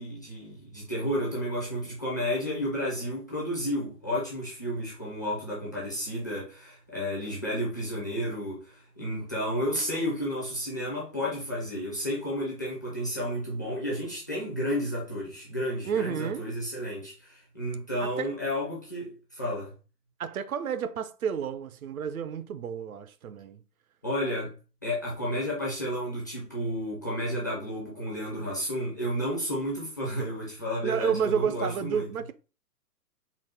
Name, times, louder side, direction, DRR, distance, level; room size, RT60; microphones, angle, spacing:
voice 1, 0.0-19.7 24.0-24.5 24.8-32.1, equal, 15° left, 0.4 m, -32 dB
voice 2, 15.8-16.5 18.0-18.3 20.2-23.6 30.8-32.3, right 7 dB, 60° right, 0.5 m, -30 dB
4.0 x 2.1 x 4.2 m
figure-of-eight pair, 125°, 48 cm